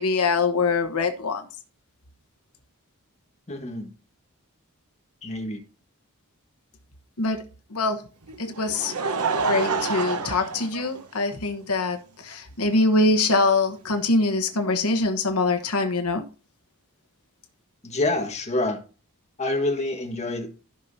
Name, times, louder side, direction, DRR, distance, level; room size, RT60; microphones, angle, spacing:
voice 1, 0.0-1.4 7.2-7.4 7.7-8.0 8.4-8.9 9.5-16.2, left 3 dB, 75° left, 1.1 m, -23 dB
voice 2, 3.5-3.9 5.2-5.6 17.8-18.8 19.4-20.5, left 2 dB, 30° left, 1.5 m, -27 dB
Laughter, 8.3-11.5 12.3-12.4 13.9-14.0, right 4 dB, 85° right, 1.1 m, -28 dB
14.5 x 5.8 x 2.7 m
head